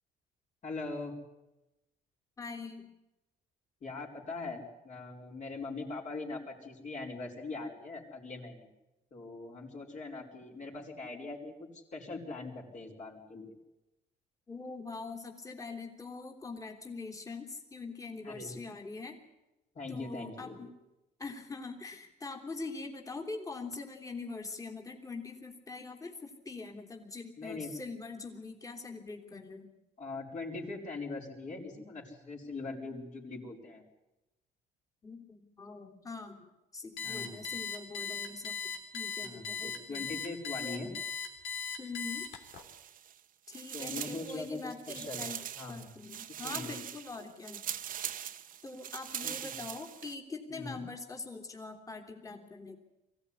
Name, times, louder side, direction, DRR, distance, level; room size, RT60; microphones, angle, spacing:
voice 1, 0.6-1.1 3.8-8.7 9.1-13.5 18.2-18.6 19.7-20.6 27.4-27.7 30.0-33.8 37.0-37.4 39.2-40.9 43.7-44.6 44.9-45.3 45.5-45.9 46.4-46.8 49.2-49.4 50.5-50.8, left 3 dB, 45° left, -2 dB, 5.0 m, -41 dB
voice 2, 2.4-2.9 14.5-19.2 19.9-20.7 21.2-29.7 35.0-38.6 38.9-40.1 40.6-40.8 41.8-42.3 43.5-45.4 45.7-47.6 48.6-52.8, left 3 dB, 20° left, 2 dB, 3.1 m, -43 dB
Alarm, 37.0-42.6, left 5 dB, 85° left, 3.5 m, -38 dB
sound 1, 42.3-43.2 43.5-50.1, right 10 dB, 55° right, 1.2 m, -42 dB
23.0 x 16.5 x 9.8 m, 0.98 s
cardioid pair, 110°, 17 cm